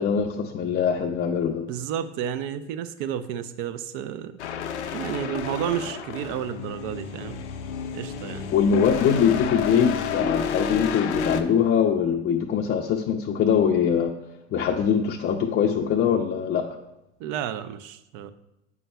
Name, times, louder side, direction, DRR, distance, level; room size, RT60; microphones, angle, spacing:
voice 1, 0.0-1.7 8.5-14.1 14.5-16.6, left 7 dB, 30° left, 2 dB, 0.5 m, -22 dB
voice 2, 1.7-4.3 4.9-7.4 7.9-8.5 17.2-18.3, right 9 dB, 55° right, 11 dB, 0.6 m, -31 dB
sound 1, 4.4-11.4, left 7 dB, 85° left, 0.5 m, -30 dB
8.1 x 5.4 x 2.2 m, 0.92 s
hypercardioid pair, 75°, 34 cm